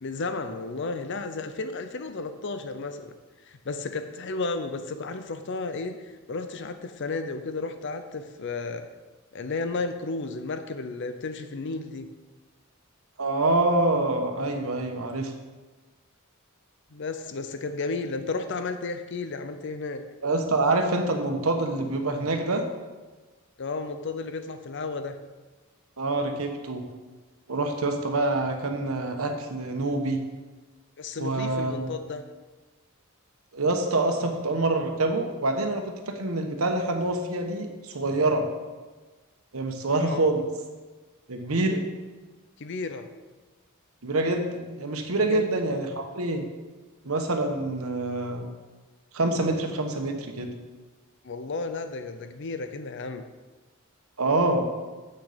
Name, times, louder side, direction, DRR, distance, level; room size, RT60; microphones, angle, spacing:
voice 1, 0.0-3.1 3.4-8.9 9.3-12.1 16.9-20.0 23.6-25.2 31.0-32.2 40.0-40.3 42.6-43.0 45.2-45.5 51.2-53.2, left 3 dB, 55° left, 8 dB, 0.6 m, -33 dB
voice 2, 13.2-15.3 20.2-22.6 26.0-26.8 27.5-30.2 31.2-31.9 33.5-38.4 39.5-40.4 41.3-41.8 44.0-46.4 47.0-48.5 49.1-50.5 54.2-54.6, right 2 dB, 75° right, 4 dB, 1.2 m, -26 dB
8.3 x 6.7 x 5.1 m, 1.3 s
head